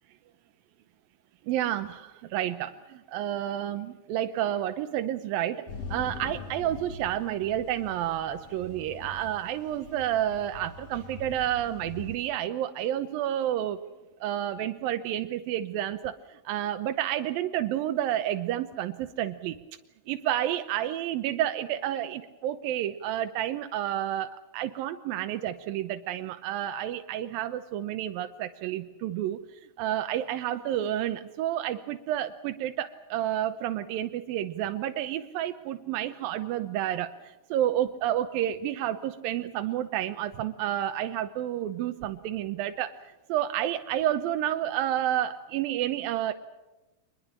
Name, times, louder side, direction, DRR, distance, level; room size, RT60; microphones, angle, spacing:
voice 1, 1.5-13.8 14.2-19.6 20.1-29.4 29.8-42.9 43.3-46.3, right 12 dB, 85° right, 8 dB, 2.7 m, -30 dB
sound 1, 5.7-12.2, left 4 dB, 60° left, 1.9 m, -43 dB
24.5 x 21.0 x 7.4 m, 1.1 s
omnidirectional pair, 4.0 m